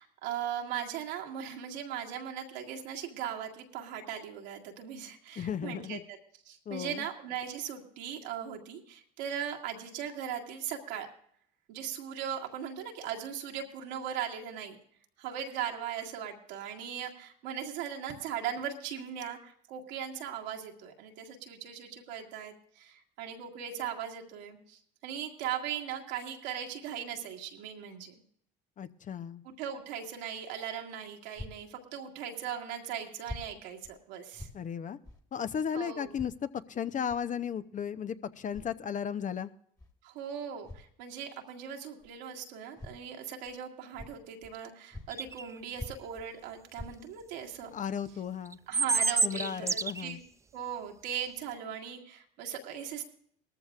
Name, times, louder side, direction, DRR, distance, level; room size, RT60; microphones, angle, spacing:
voice 1, 0.0-6.2 6.5-11.1 11.7-14.8 15.2-28.1 29.4-34.5 35.7-36.1 40.0-47.7 48.7-50.2 50.5-53.0, right 9 dB, 85° right, 1 dB, 2.0 m, -39 dB
voice 2, 5.4-6.0 6.7-7.1 28.8-29.4 34.5-35.0 35.3-39.5 47.7-48.6 49.2-50.2, left 8 dB, 35° left, 12 dB, 0.7 m, -35 dB
sound 1, 31.3-31.6 32.4-32.5 33.2-33.5 33.8-34.0 34.3-34.6 35.0-35.2 36.1-36.4 37.1-37.3 38.4-38.8 39.8-39.9 40.6-40.9 42.0-42.1 42.8-43.0 43.4-43.6 43.9-44.6 44.9-45.4 45.7-46.3 46.7-47.3 47.8-47.9 48.4-48.5, left 2 dB, 15° left, 1.7 m, -45 dB
sound 2, 45.1-45.4 48.5-50.0, right 4 dB, 15° right, 0.4 m, -28 dB
19.0 x 14.0 x 2.4 m, 0.64 s
supercardioid pair, 80°, 21 cm